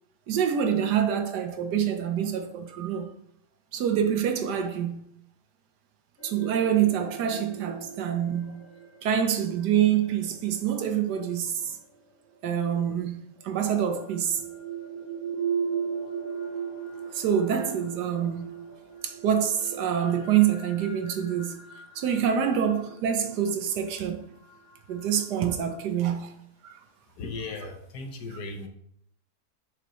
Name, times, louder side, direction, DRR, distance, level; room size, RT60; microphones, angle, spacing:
voice 1, 0.3-3.1 3.7-5.0 6.2-8.6 9.0-11.6 12.4-13.2 13.4-14.4 17.1-18.5 19.0-21.6 21.9-24.2 24.9-26.3 26.6-26.8 28.3-28.4, right 9 dB, 85° right, 1.4 m, -26 dB
sound 1, 6.2-12.2 13.4-25.8, right 6 dB, 55° left, 1.9 m, -38 dB
voice 2, 27.2-28.7, left 3 dB, 75° left, 1.5 m, -36 dB
6.9 x 5.9 x 3.1 m
omnidirectional pair, 1.7 m